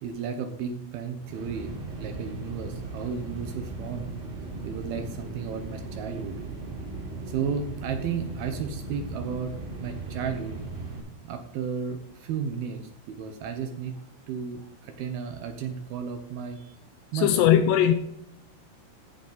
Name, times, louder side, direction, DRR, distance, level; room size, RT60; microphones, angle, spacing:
voice 1, 0.0-4.1 4.6-6.4 7.3-9.5 9.8-10.6 11.2-12.8 13.1-14.0 14.3-16.8 17.1-17.5, right 6 dB, 75° right, 6 dB, 2.3 m, -33 dB
sound 1, 1.2-11.0, right 3 dB, 60° right, 4.4 m, -37 dB
voice 2, 17.1-17.9, left 10 dB, 80° left, 8 dB, 2.5 m, -19 dB
15.0 x 6.6 x 4.0 m, 0.78 s
omnidirectional pair, 5.5 m